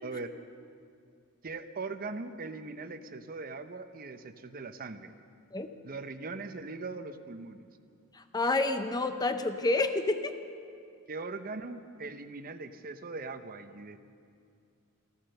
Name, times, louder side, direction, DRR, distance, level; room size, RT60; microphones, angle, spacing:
voice 1, 0.0-0.3 1.4-5.1 5.8-7.7 11.1-14.0, right 3 dB, 40° right, 9 dB, 0.7 m, -40 dB
voice 2, 8.2-10.3, left 2 dB, 20° left, 8 dB, 0.6 m, -29 dB
14.5 x 14.5 x 6.6 m, 2.3 s
head